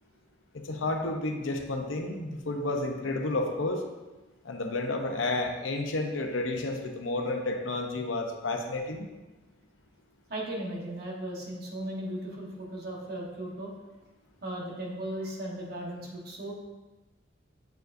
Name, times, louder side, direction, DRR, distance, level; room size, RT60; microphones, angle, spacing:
voice 1, 0.5-3.8 4.4-9.1, left 2 dB, 85° left, 4 dB, 0.7 m, -31 dB
voice 2, 10.3-13.7 14.4-16.5, right 1 dB, 50° right, -2 dB, 1.2 m, -36 dB
7.9 x 4.8 x 2.6 m, 1.2 s
head